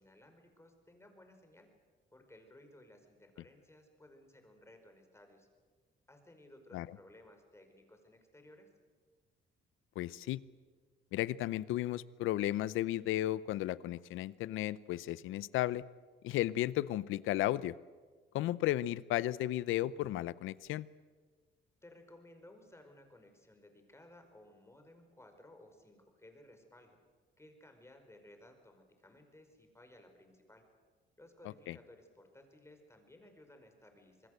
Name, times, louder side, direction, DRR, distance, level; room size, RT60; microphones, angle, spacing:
voice 1, 0.0-1.7 2.1-5.5 6.1-8.7 21.8-27.0 27.4-30.6 31.2-34.3, left 1 dB, 15° left, 5 dB, 5.2 m, -59 dB
voice 2, 10.0-10.4 11.1-15.8 16.2-17.7 18.3-20.8 31.7-31.8, left 14 dB, 90° left, 20 dB, 0.7 m, -34 dB
26.0 x 20.5 x 8.0 m, 1.5 s
cardioid pair, 90°, 20 cm